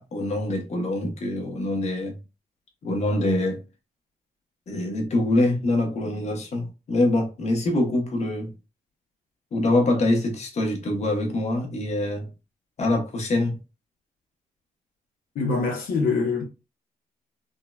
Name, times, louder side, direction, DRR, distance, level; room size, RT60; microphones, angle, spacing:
voice 1, 0.0-2.2 2.8-3.6 4.7-8.5 9.5-12.3 12.8-13.6, left 1 dB, 45° left, 0.9 m, -24 dB
voice 2, 15.3-16.4, left 4 dB, 75° left, 0.7 m, -24 dB
3.5 x 2.1 x 2.2 m
cardioid pair, 105°, 15 cm